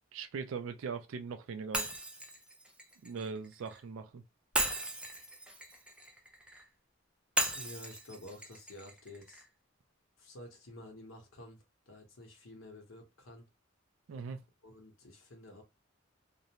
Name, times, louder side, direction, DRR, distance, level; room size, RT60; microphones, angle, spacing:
voice 1, 0.1-1.9 3.0-4.2 14.1-14.4, right 5 dB, 75° right, 0.4 m, -40 dB
Shatter, 1.7-3.8 4.5-6.6 7.4-9.5, right 1 dB, 5° right, 0.5 m, -37 dB
voice 2, 7.5-9.4 10.2-13.4 14.6-15.6, left 1 dB, 80° left, 1.0 m, -51 dB
2.5 x 2.1 x 2.9 m
head